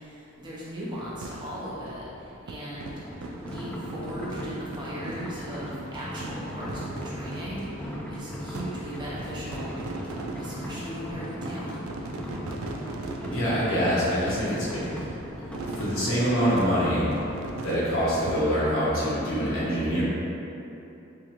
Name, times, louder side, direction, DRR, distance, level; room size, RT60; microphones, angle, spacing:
voice 1, 0.0-3.2 3.4-9.7 10.4-11.8, equal, 20° right, -8 dB, 0.7 m, -38 dB
sound 1, 1.0-18.6, right 2 dB, 80° right, 0.4 m, -40 dB
sound 2, 3.1-17.4, equal, 5° left, 0.4 m, -38 dB
voice 2, 13.3-15.1 15.8-17.1 17.6-20.0, equal, 80° left, -9 dB, 1.2 m, -25 dB
3.7 x 3.1 x 3.0 m, 2.9 s
head